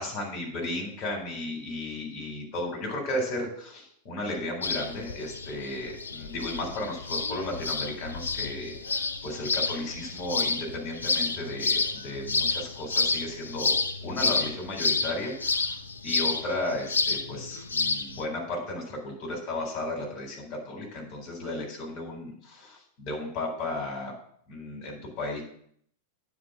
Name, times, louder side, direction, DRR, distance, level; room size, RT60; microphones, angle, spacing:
voice 1, 0.0-15.8 16.0-24.1 24.5-25.4, left 1 dB, 40° left, 1 dB, 4.0 m, -34 dB
sound 1, 4.6-18.2, left 4 dB, 75° left, 0.6 m, -30 dB
9.7 x 5.2 x 7.3 m, 0.65 s
figure-of-eight pair, 90°, 0 cm